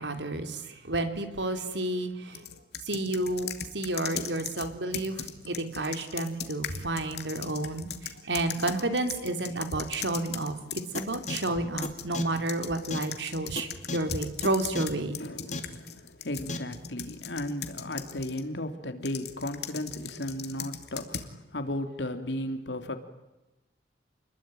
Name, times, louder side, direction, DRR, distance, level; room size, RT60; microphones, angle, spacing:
voice 1, 0.0-2.5 2.9-3.5 3.7-15.2, right 2 dB, 90° right, 8 dB, 3.6 m, -31 dB
sound 1, 2.3-11.5 11.8-18.5 19.1-21.3, left 8 dB, 65° left, 2.6 m, -39 dB
sound 2, 10.9-11.0 11.3-11.4 11.8-11.9 12.1-12.2 12.9-13.0 13.6-13.7 13.9-14.0 14.4-14.5 14.7-14.8 15.5-15.6 16.5-16.6, left 2 dB, 45° left, 3.0 m, -32 dB
voice 2, 15.2-23.0, left 1 dB, 80° left, 8 dB, 3.1 m, -35 dB
29.5 x 21.5 x 9.2 m, 1.0 s
head